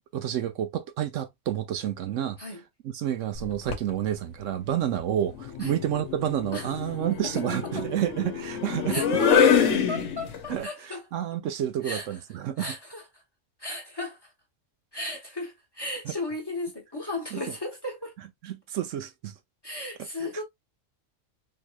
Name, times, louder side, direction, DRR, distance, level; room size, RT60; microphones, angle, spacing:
voice 1, 0.1-2.4 2.8-9.2 10.5-12.7 16.0-16.1 17.3-17.4 18.4-19.3 20.2-20.4, right 11 dB, 75° right, 0.9 m, -30 dB
sound 1, 3.4-3.9 5.3-10.5, left 7 dB, 65° left, 1.1 m, -26 dB
voice 2, 8.9-9.3 9.9-11.0 11.8-12.1 12.6-13.0 13.6-14.2 14.9-18.1 19.6-20.4, left 2 dB, 20° left, 1.0 m, -35 dB
3.8 x 3.0 x 2.2 m
omnidirectional pair, 1.3 m